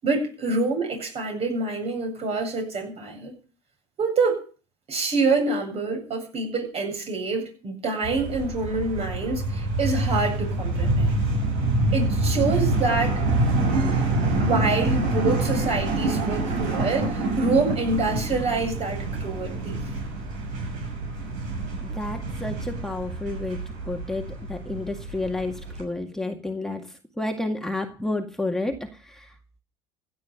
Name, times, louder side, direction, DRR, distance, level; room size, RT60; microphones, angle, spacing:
voice 1, 0.0-3.3 4.0-4.4 4.9-11.1 11.9-13.2 13.9-14.0 14.4-19.8, right 3 dB, 45° right, 4 dB, 7.9 m, -26 dB
sound 1, 8.0-25.8, right 2 dB, 65° right, 6.7 m, -26 dB
voice 2, 21.8-29.3, left 2 dB, 5° left, 2 dB, 2.1 m, -31 dB
16.0 x 9.6 x 6.7 m, 0.38 s
hypercardioid pair, 75°, 15 cm